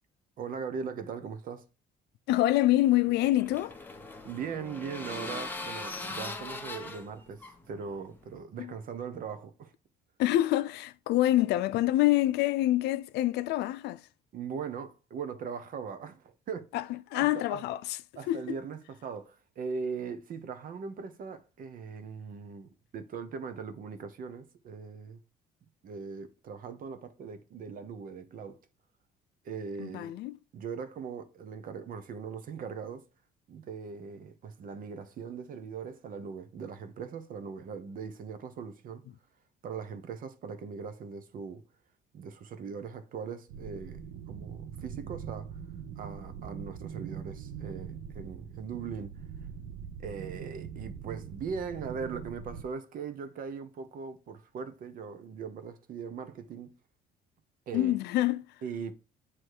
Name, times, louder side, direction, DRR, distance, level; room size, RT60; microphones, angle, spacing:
voice 1, 0.4-1.6 4.2-9.7 14.3-16.6 17.1-17.6 18.2-25.2 25.8-28.6 29.4-30.1 30.5-33.0 33.5-39.0 39.6-41.6 42.1-45.6 46.0-49.1 50.0-56.7 57.7-58.0 58.6-58.9, right 6 dB, 55° right, 1.0 m, -40 dB
voice 2, 2.3-3.8 8.6-8.7 10.2-14.0 16.7-16.8 17.1-18.0 18.3-18.4 29.8-30.3 57.7-58.4, left 15 dB, 80° left, 0.5 m, -26 dB
sound 1, 2.8-8.4, left 3 dB, 10° left, 1.1 m, -41 dB
sound 2, 43.5-52.6, right 7 dB, 85° right, 0.8 m, -42 dB
8.0 x 3.1 x 4.8 m
cardioid pair, 110°, 17 cm